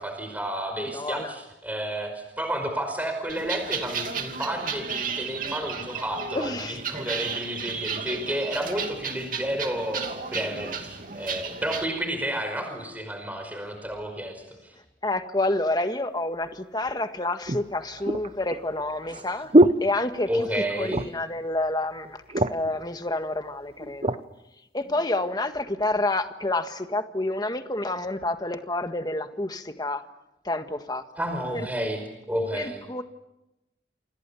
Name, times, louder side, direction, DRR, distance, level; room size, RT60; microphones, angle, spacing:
voice 1, 0.0-14.7 20.3-21.1 31.2-32.0 32.3-32.8, right 1 dB, 10° right, 5 dB, 5.1 m, -31 dB
voice 2, 0.9-1.3 6.4-6.8 15.0-19.5 19.8-20.5 20.8-22.2 22.5-24.2 24.7-30.0 30.5-31.0 31.5-31.6 32.5-33.0, left 2 dB, 25° left, 7 dB, 1.7 m, -28 dB
sound 1, 3.3-11.8, right 6 dB, 50° right, 2.7 m, -33 dB
sound 2, 16.5-16.6 17.5-20.6 20.9-21.3 21.7-21.8 22.1-22.8 23.5-24.2 24.9-25.0, right 1 dB, 35° right, 0.9 m, -24 dB
28.0 x 27.0 x 7.0 m, 0.93 s
head